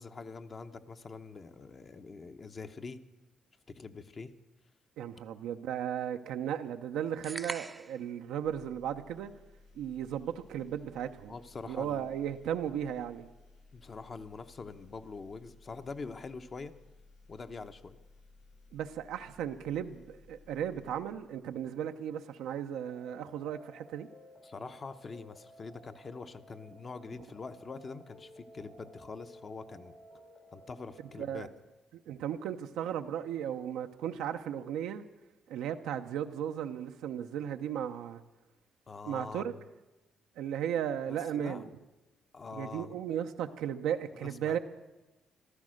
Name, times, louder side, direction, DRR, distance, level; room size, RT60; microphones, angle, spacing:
voice 1, 0.0-3.0 3.7-4.3 11.3-12.2 13.7-16.7 17.3-18.0 24.4-29.9 30.5-31.5 38.9-39.6 41.1-41.7 42.3-42.9 44.1-44.6, left 4 dB, 40° left, 9 dB, 0.9 m, -44 dB
voice 2, 5.0-9.3 9.8-11.3 11.7-13.3 18.7-24.1 31.2-31.5 32.1-35.0 35.5-38.2 39.0-39.5 40.4-41.7 42.5-44.6, right 9 dB, 90° right, 6 dB, 0.6 m, -35 dB
sound 1, 7.2-8.1, right 3 dB, 20° right, 0.5 m, -40 dB
sound 2, 8.4-21.8, left 3 dB, 85° left, 5.0 m, -59 dB
sound 3, 22.7-31.3, equal, 70° left, 3.0 m, -56 dB
14.5 x 12.5 x 6.4 m, 1.0 s
cardioid pair, 90°, 0 cm